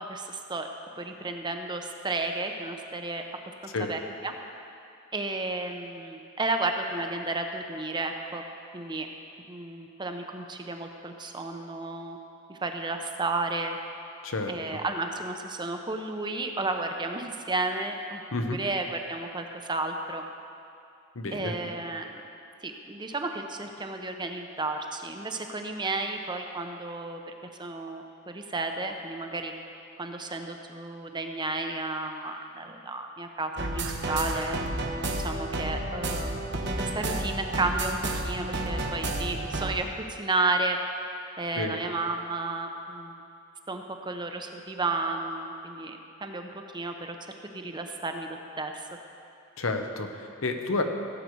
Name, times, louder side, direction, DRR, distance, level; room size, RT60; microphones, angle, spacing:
voice 1, 0.1-0.7 1.0-3.2 3.8-4.3 5.1-8.4 8.7-9.1 9.5-12.2 12.5-13.8 14.5-20.2 21.3-22.1 22.6-27.3 27.6-29.5 30.0-34.6 35.2-36.4 36.8-38.0 38.2-40.8 41.4-43.2 43.7-47.1 47.5-48.3 48.6-48.9, right 2 dB, 20° right, 4 dB, 0.8 m, -32 dB
voice 2, 21.1-21.5 41.5-41.8 49.6-50.8, left 3 dB, 80° left, 5 dB, 1.0 m, -30 dB
sound 1, 33.6-39.7, right 2 dB, 60° right, 1.1 m, -31 dB
16.5 x 8.4 x 4.7 m, 2.5 s
head